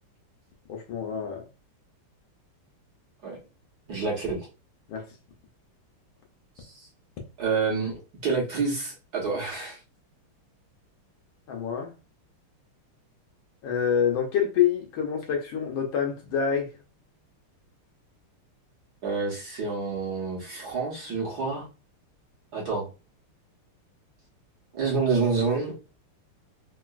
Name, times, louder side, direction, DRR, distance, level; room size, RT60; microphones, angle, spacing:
voice 1, 0.7-1.4 4.9-5.0 11.5-11.9 13.6-16.7, left 8 dB, 70° left, 1.3 m, -26 dB
voice 2, 3.9-4.4 6.6-6.9 7.4-9.8 19.0-21.6 22.5-22.8 24.7-25.7, right 4 dB, 55° right, 1.3 m, -28 dB
3.8 x 2.4 x 2.2 m
omnidirectional pair, 2.4 m